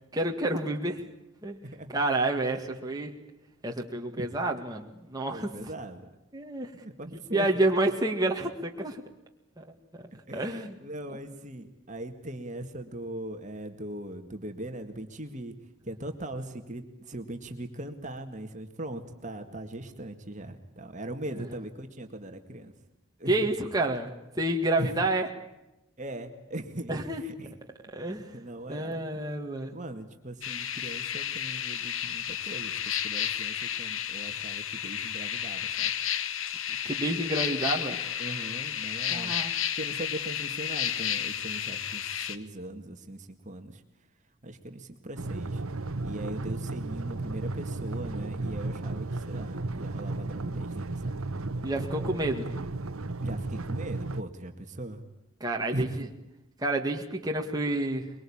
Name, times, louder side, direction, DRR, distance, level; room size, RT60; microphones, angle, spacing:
voice 1, 0.1-1.0 1.4-1.6 1.9-3.1 3.6-5.6 6.3-6.7 7.3-9.0 9.6-10.0 10.3-10.8 11.1-11.2 21.3-21.5 23.3-25.3 26.9-27.3 27.9-28.3 28.7-29.7 36.9-38.0 39.1-39.5 51.6-52.5 55.4-56.1 56.6-58.1, right 2 dB, 15° right, 1 dB, 1.9 m, -29 dB
voice 2, 5.3-6.1 6.8-7.7 10.1-15.5 15.8-22.7 23.2-23.3 24.8-24.9 26.0-27.5 28.3-29.1 29.7-35.9 38.2-39.4 39.8-43.8 44.4-45.6 46.0-51.1 53.2-55.0 55.7-56.1, right 1 dB, 35° right, 6 dB, 2.0 m, -39 dB
sound 1, 30.4-42.4, left 9 dB, 70° left, 1.3 m, -32 dB
sound 2, 45.2-54.2, right 2 dB, 80° right, 1.0 m, -34 dB
23.5 x 22.5 x 8.7 m, 0.91 s
head